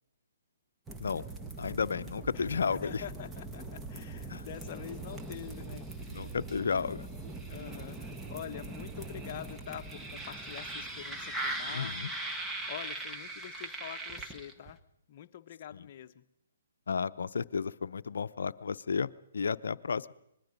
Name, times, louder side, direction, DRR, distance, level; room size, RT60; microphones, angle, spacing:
sound 1, 0.9-14.8, right 2 dB, 10° right, 1.4 m, -40 dB
voice 1, 1.6-3.0 4.3-4.5 6.1-7.1 11.7-12.1 15.7-15.9 16.9-20.1, left 5 dB, 70° left, 12 dB, 0.7 m, -33 dB
voice 2, 2.3-6.3 7.5-12.0 12.7-14.8 15.1-16.2, left 10 dB, 45° left, 9 dB, 1.0 m, -46 dB
25.0 x 21.0 x 5.3 m, 0.79 s
hypercardioid pair, 140°, 0 cm